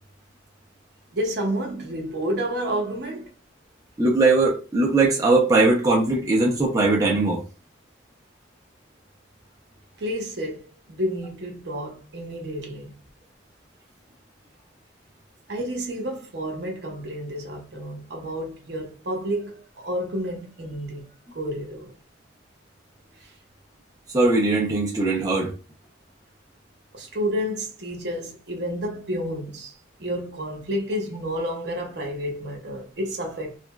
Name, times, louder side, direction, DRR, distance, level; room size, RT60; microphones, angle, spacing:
voice 1, 1.1-3.3 10.0-13.0 15.5-21.9 23.2-23.3 26.9-33.6, equal, 60° right, 0.8 m, -30 dB
voice 2, 4.0-7.4 24.1-25.5, right 2 dB, 20° right, 0.6 m, -20 dB
2.9 x 2.5 x 2.2 m
head